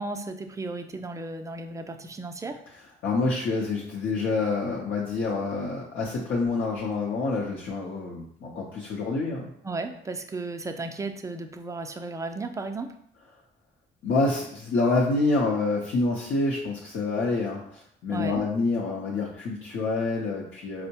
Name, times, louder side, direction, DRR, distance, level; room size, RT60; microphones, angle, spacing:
voice 1, 0.0-2.6 9.6-12.9 18.1-18.4, right 3 dB, 15° right, 5 dB, 0.3 m, -34 dB
voice 2, 3.0-9.5 14.0-20.9, left 3 dB, 70° left, -4 dB, 0.6 m, -27 dB
4.4 x 2.0 x 2.8 m, 0.69 s
cardioid pair, 90°, 20 cm